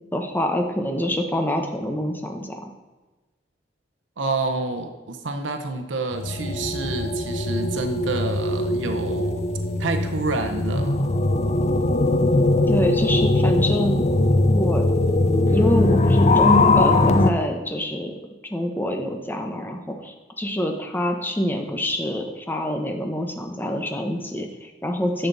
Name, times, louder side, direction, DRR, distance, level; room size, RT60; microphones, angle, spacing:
voice 1, 0.1-2.7 12.7-14.0 14.5-14.9 15.5-18.1 18.5-25.3, equal, 10° left, 4 dB, 0.9 m, -26 dB
voice 2, 4.2-9.4 9.8-11.1, right 3 dB, 85° right, 5 dB, 0.8 m, -28 dB
sound 1, 6.1-17.3, left 2 dB, 35° left, 0.5 m, -20 dB
10.5 x 6.8 x 4.0 m, 1.2 s
head